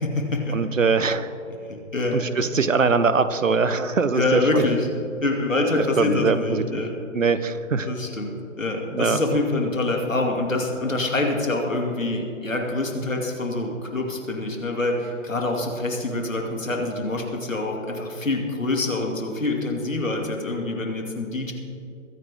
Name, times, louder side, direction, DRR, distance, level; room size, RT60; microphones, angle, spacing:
voice 1, 0.0-0.6 1.6-2.5 4.1-6.9 7.9-21.5, left 2 dB, 80° left, 1 dB, 2.6 m, -26 dB
voice 2, 0.5-1.3 2.1-4.7 5.8-6.6 7.1-7.9 8.9-9.2, right 4 dB, 75° right, 12 dB, 1.0 m, -22 dB
22.5 x 9.7 x 3.6 m, 2.6 s
figure-of-eight pair, 135°, 39 cm